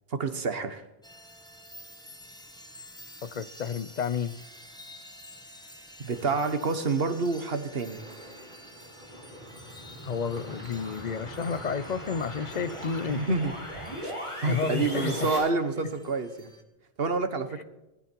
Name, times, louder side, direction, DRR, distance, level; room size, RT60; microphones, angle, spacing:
voice 1, 0.1-0.8 6.0-8.0 13.1-13.5 14.0-14.1 14.4-16.5 17.0-17.6, right 4 dB, 70° right, 1.5 m, -28 dB
sound 1, 1.0-16.6, equal, 5° left, 1.4 m, -50 dB
voice 2, 3.2-4.4 10.0-13.3 14.5-15.2, left 6 dB, 50° left, 0.7 m, -31 dB
sound 2, 6.1-13.4, equal, 50° right, 2.7 m, -49 dB
sound 3, 8.9-15.4, equal, 30° left, 7.4 m, -39 dB
20.0 x 12.5 x 4.5 m
omnidirectional pair, 1.1 m